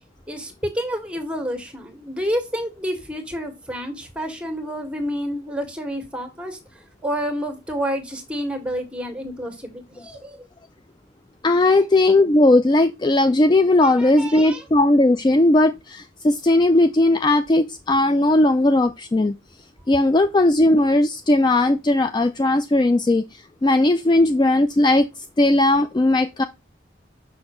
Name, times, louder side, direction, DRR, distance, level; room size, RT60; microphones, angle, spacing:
voice 1, 0.3-6.6 7.0-10.4 13.8-14.6, equal, 5° right, 1.7 m, -29 dB
voice 2, 11.4-19.3 19.9-26.4, left 2 dB, 25° left, 0.3 m, -17 dB
6.3 x 5.7 x 3.1 m
head